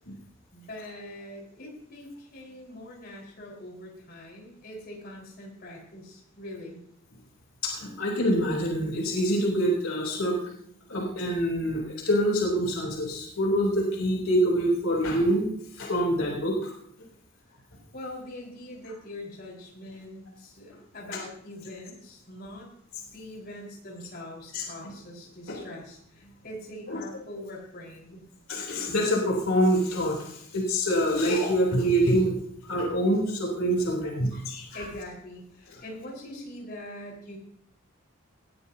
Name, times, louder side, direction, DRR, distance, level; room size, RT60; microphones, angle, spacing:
voice 1, 0.5-6.8 17.9-22.7 23.1-28.2 34.7-37.4, left 1 dB, 50° left, -2 dB, 4.4 m, -43 dB
voice 2, 7.6-10.5 10.9-15.5 15.8-16.7 24.5-24.9 25.5-25.6 26.9-27.0 28.5-32.3 32.6-34.8, equal, 85° left, -2 dB, 3.3 m, -25 dB
19.0 x 12.5 x 2.8 m, 0.70 s
head